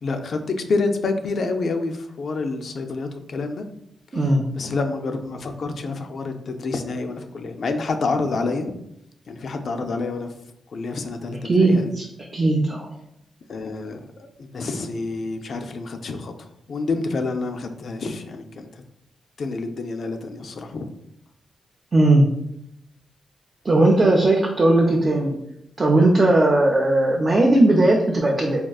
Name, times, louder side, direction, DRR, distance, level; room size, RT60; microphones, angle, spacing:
voice 1, 0.0-3.6 4.2-8.7 9.3-10.3 10.7-11.9 13.5-18.8 19.4-20.9, left 3 dB, 65° left, 6 dB, 0.3 m, -28 dB
voice 2, 4.1-4.4 11.5-12.1 12.3-12.9 21.9-22.3 23.6-25.3 25.8-28.6, right 2 dB, 40° right, -2 dB, 0.4 m, -17 dB
3.5 x 2.3 x 2.3 m, 0.79 s
cardioid pair, 80°, 0 cm